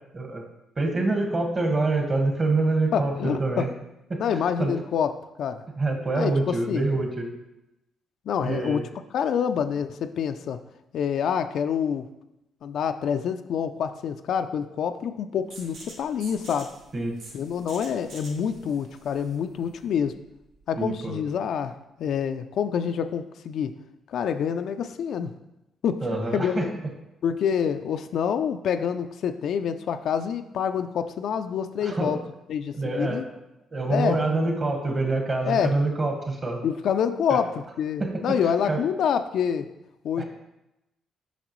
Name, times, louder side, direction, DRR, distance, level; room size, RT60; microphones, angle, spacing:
voice 1, 0.1-0.4 0.8-3.7 4.1-4.2 4.6-4.7 5.8-7.3 8.4-8.8 16.9-17.2 20.8-21.1 26.0-26.7 31.8-32.2 32.7-33.2 33.7-36.6 37.3-37.4 38.0-38.4 38.7-38.8 40.2-40.3, right 2 dB, 35° right, 3 dB, 1.5 m, -26 dB
voice 2, 2.9-3.7 4.2-5.1 5.4-5.6 6.1-6.9 8.3-8.8 9.1-10.6 10.9-12.1 12.6-16.7 17.3-20.2 20.7-23.7 24.1-25.3 25.8-26.0 26.3-26.7 27.2-32.2 32.5-33.2 33.9-34.2 35.4-35.7 36.6-37.5 37.8-39.7 40.0-40.2, left 7 dB, 70° left, 7 dB, 0.4 m, -27 dB
sound 1, 15.5-21.0, right 2 dB, 85° right, 1.9 m, -47 dB
7.9 x 5.8 x 3.1 m, 0.91 s
cardioid pair, 90°, 0 cm